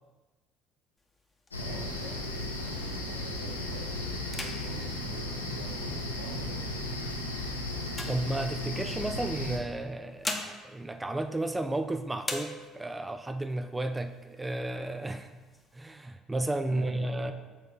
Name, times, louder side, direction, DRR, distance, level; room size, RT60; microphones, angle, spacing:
sound 1, 1.0-3.2 3.6-3.9 4.2-6.1 6.8-8.9 9.8-11.8 12.2-13.1 13.5-13.6 13.9-14.5 15.0-15.9, left 2 dB, 15° left, 0.9 m, -42 dB
sound 2, 1.5-9.6, left 1 dB, 90° left, 0.6 m, -35 dB
voice 1, 1.6-2.3 2.6-6.7 16.7-17.3, right 1 dB, 85° right, -6 dB, 1.6 m, -45 dB
voice 2, 8.1-15.3 15.7-17.3, right 1 dB, 15° right, 8 dB, 0.4 m, -33 dB
7.0 x 3.9 x 5.0 m, 1.2 s
figure-of-eight pair, 55°, 0 cm